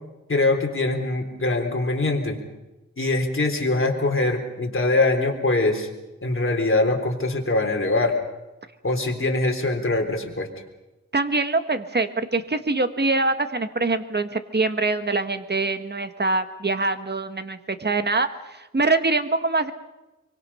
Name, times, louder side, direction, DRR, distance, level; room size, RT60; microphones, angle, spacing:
voice 1, 0.3-2.4 3.0-5.9 6.2-8.2 8.8-10.5, left 2 dB, 45° left, 2 dB, 3.7 m, -23 dB
voice 2, 11.1-19.7, right 3 dB, 35° right, 9 dB, 1.5 m, -24 dB
25.0 x 24.5 x 5.7 m, 1.1 s
wide cardioid pair, 100°, 30 cm